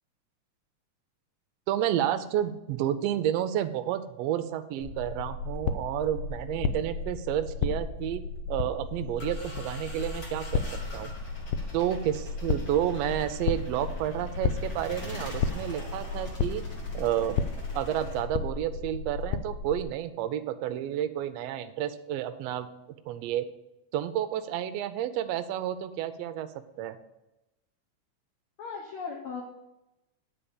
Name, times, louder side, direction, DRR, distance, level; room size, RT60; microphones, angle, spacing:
voice 1, 1.7-8.2 8.5-10.6 10.9-11.1 11.7-16.6 16.9-17.4 17.7-22.7 23.1-23.5 23.9-26.5 26.8-27.0, right 11 dB, 85° right, 10 dB, 1.5 m, -30 dB
sound 1, 4.8-19.8, left 5 dB, 90° left, 1.4 m, -33 dB
sound 2, 8.9-18.2, left 1 dB, 35° left, 1.9 m, -45 dB
voice 2, 28.6-29.4, left 5 dB, 65° left, 0 dB, 1.4 m, -37 dB
9.0 x 4.2 x 7.0 m, 0.94 s
omnidirectional pair, 3.5 m